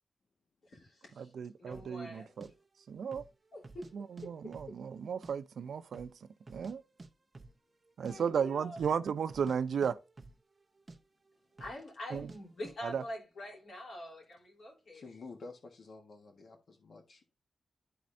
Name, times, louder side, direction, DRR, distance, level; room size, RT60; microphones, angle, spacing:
voice 1, 0.6-1.3 1.6-2.3 3.5-3.9 4.2-4.3 8.1-8.8 11.6-15.0, left 1 dB, 75° left, 3.3 m, -45 dB
voice 2, 1.2-2.5 2.9-3.2 3.9-6.1 6.5-6.8 8.0-10.0 12.1-12.3 12.8-13.0, right 7 dB, 85° right, 0.5 m, -34 dB
sound 1, 1.7-1.9 2.4-2.5 3.0-3.3 3.6-4.3 4.5-5.3 5.6-5.7 5.9-6.7 7.0-7.1 7.3-7.6 7.9-8.2 8.7-9.0 9.3-10.6 10.9-11.0 11.6-11.8 12.1-12.4 12.6-12.8, right 3 dB, 25° right, 0.7 m, -51 dB
voice 3, 14.9-17.3, left 3 dB, 60° left, 1.4 m, -50 dB
12.0 x 4.2 x 2.6 m
wide cardioid pair, 150°, 0 cm